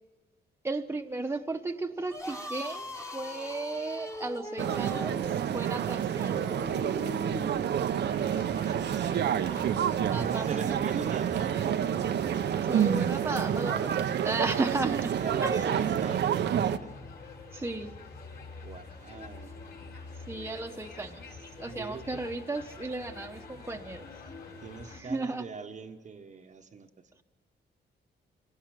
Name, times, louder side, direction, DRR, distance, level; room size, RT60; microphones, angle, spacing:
voice 1, 0.6-5.2 5.5-6.4 10.1-10.5 12.7-15.2 15.4-16.0 17.5-17.9 20.3-21.2 21.6-24.1 24.9-25.5, right 2 dB, 15° right, 4 dB, 1.1 m, -34 dB
sound 1, 2.1-7.6, left 1 dB, 15° left, 1.6 m, -40 dB
sound 2, 4.6-16.8, right 9 dB, 70° right, 0.8 m, -28 dB
sound 3, 8.0-25.0, left 4 dB, 60° left, 4.5 m, -47 dB
voice 2, 8.6-9.5 10.1-11.8 15.2-17.0 18.6-19.6 21.7-22.2 24.6-27.1, right 5 dB, 40° right, 6 dB, 1.1 m, -41 dB
25.0 x 18.0 x 7.6 m, 1.5 s
cardioid pair, 125°, 19 cm